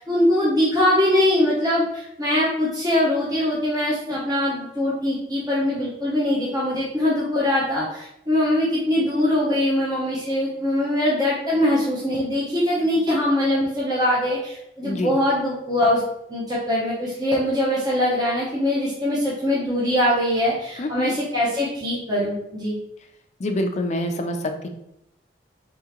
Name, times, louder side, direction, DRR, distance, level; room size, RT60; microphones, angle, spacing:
voice 1, 0.0-16.0 16.3-22.8, left 1 dB, 25° right, -7 dB, 0.8 m, -22 dB
voice 2, 14.8-15.2 20.8-21.1 23.4-24.7, left 1 dB, 40° left, 5 dB, 0.4 m, -26 dB
3.6 x 3.2 x 3.0 m, 0.80 s
head